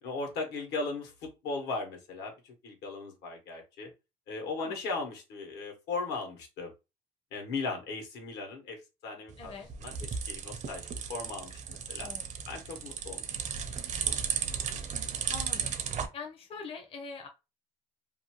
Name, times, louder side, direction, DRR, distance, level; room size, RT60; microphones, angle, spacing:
voice 1, 0.0-3.9 4.3-6.7 7.3-9.5 9.8-12.1 12.5-13.2, left 3 dB, 80° left, 3 dB, 1.1 m, -37 dB
sound 1, 9.3-16.1, right 7 dB, 45° right, 0.5 m, -35 dB
voice 2, 9.4-9.7 12.0-12.3 15.3-15.8 16.1-17.3, left 4 dB, 35° left, 3 dB, 0.6 m, -43 dB
2.6 x 2.2 x 2.9 m, 0.26 s
cardioid pair, 110°, 17 cm